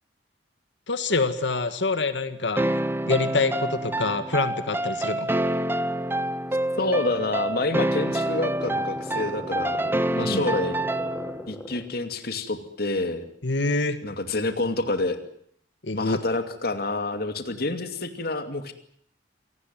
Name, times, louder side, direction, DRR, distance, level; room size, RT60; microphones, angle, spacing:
voice 1, 0.9-2.7 3.1-5.4 10.2-10.4 13.4-14.0 15.8-16.2, left 3 dB, 90° left, 10 dB, 1.8 m, -26 dB
sound 1, 2.6-11.4, right 1 dB, 10° right, 1.0 m, -27 dB
voice 2, 6.7-10.7 11.5-13.3 14.0-15.2 15.9-18.7, left 2 dB, 60° left, 8 dB, 2.6 m, -28 dB
sound 2, 7.5-12.0, left 1 dB, 10° left, 3.3 m, -40 dB
27.0 x 18.5 x 9.2 m, 0.64 s
head